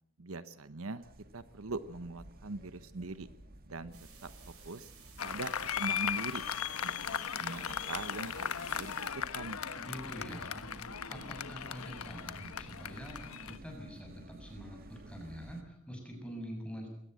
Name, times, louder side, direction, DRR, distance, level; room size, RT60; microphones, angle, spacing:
voice 1, 0.2-1.0 1.3-3.3 3.6-4.0 4.2-4.3 4.6-4.9 5.2-6.4 6.8-9.6, right 3 dB, 70° right, 13 dB, 1.0 m, -42 dB
sound 1, 1.0-15.6, right 1 dB, 40° right, 1.8 m, -54 dB
sound 2, 3.9-9.1, right 7 dB, 85° right, 7.7 m, -57 dB
Applause, 5.2-13.6, left 8 dB, 80° left, 1.2 m, -37 dB
voice 2, 9.8-10.7 11.1-16.9, equal, 5° left, 1 dB, 6.6 m, -45 dB
21.5 x 18.0 x 7.7 m, 0.74 s
head